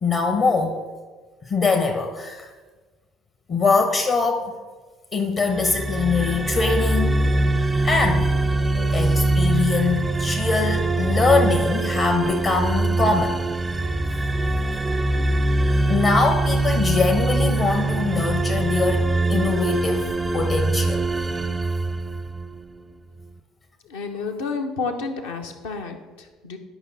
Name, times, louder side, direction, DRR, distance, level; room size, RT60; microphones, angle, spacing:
voice 1, 0.0-0.8 1.4-2.5 3.5-4.5 5.1-7.2 7.8-8.3 8.7-13.4 15.9-21.1, left 4 dB, 40° left, 4 dB, 0.8 m, -22 dB
sound 1, 5.5-22.6, right 2 dB, 15° right, 0.4 m, -23 dB
voice 2, 23.8-26.6, left 4 dB, 70° left, 3 dB, 0.9 m, -30 dB
11.0 x 5.4 x 4.1 m, 1.4 s
figure-of-eight pair, 55°, 0 cm